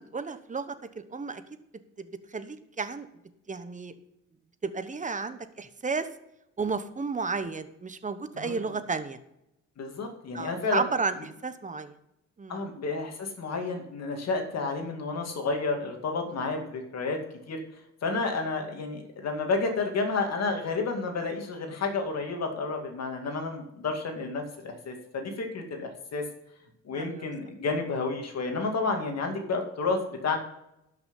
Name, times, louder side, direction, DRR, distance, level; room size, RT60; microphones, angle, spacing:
voice 1, 0.0-1.4 2.0-3.1 3.5-3.9 4.6-6.1 6.6-9.2 10.3-11.2 11.4-12.0 12.4-12.6 26.9-27.3, right 4 dB, 25° right, 11 dB, 1.1 m, -32 dB
voice 2, 8.4-8.7 9.8-10.8 12.5-17.2 17.5-17.6 18.0-26.2 26.8-30.4, left 3 dB, 60° left, 4 dB, 2.3 m, -31 dB
12.0 x 6.0 x 5.4 m, 0.85 s
cardioid pair, 90°, 30 cm